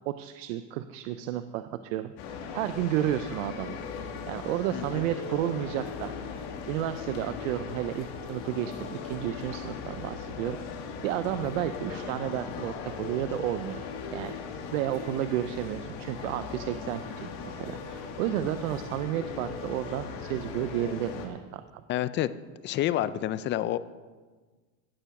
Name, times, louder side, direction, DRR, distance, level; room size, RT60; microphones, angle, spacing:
voice 1, 0.1-3.8 4.3-6.1 6.7-10.6 11.0-13.8 14.1-21.8, right 12 dB, 90° right, 11 dB, 0.6 m, -32 dB
sound 1, 2.2-21.3, left 5 dB, 65° left, 2.2 m, -38 dB
voice 2, 21.9-22.3 22.6-23.8, left 13 dB, 30° left, 15 dB, 0.4 m, -28 dB
16.0 x 7.0 x 5.9 m, 1.4 s
supercardioid pair, 135°, 38 cm